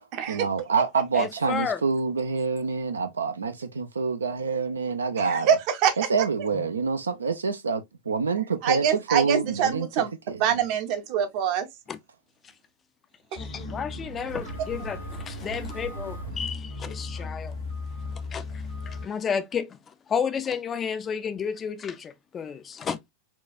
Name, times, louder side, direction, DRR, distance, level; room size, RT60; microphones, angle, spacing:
voice 1, 0.3-5.6 6.0-10.4, right 5 dB, 75° right, 0.4 m, -27 dB
voice 2, 1.2-1.8 6.6-6.7 11.9-12.0 13.3-17.5 18.3-19.8 20.1-23.0, left 7 dB, 25° left, 0.4 m, -32 dB
voice 3, 5.2-6.0 8.6-10.1 10.4-11.7, right 8 dB, 45° right, 0.7 m, -24 dB
sound 1, 13.4-19.1, left 2 dB, 85° left, 1.5 m, -36 dB
4.4 x 2.3 x 2.3 m
figure-of-eight pair, 90°, 0 cm